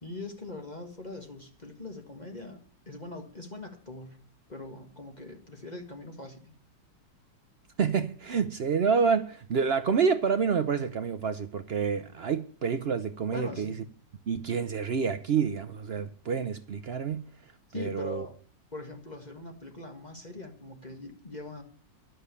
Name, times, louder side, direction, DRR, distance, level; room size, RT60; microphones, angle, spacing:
voice 1, 0.0-4.2 4.5-6.5 13.3-13.9 17.7-18.3 18.7-21.6, left 2 dB, 25° left, 1.8 m, -42 dB
voice 2, 7.8-13.7 14.3-17.2 17.7-18.3, right 6 dB, 80° right, 0.5 m, -28 dB
11.0 x 7.7 x 8.2 m
omnidirectional pair, 2.0 m